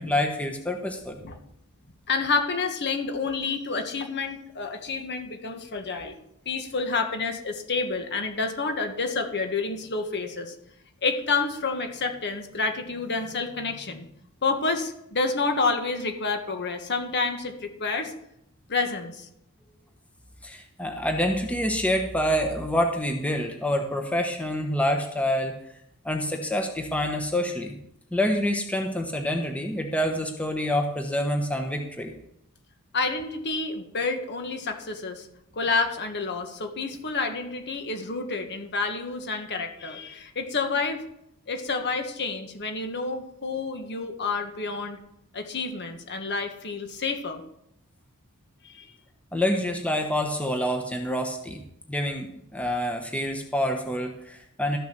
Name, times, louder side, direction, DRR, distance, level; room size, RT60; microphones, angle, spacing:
voice 1, 0.0-1.2 20.4-25.5 26.0-27.8 28.1-32.1 49.3-51.6 51.9-54.8, equal, 5° left, 4 dB, 1.1 m, -27 dB
voice 2, 2.1-6.2 6.4-10.5 11.0-14.1 14.4-18.1 18.7-19.3 32.9-35.3 35.5-41.0 41.5-45.0 45.3-47.4 48.6-48.9, left 4 dB, 50° left, 6 dB, 1.5 m, -29 dB
13.0 x 6.9 x 6.0 m, 0.76 s
head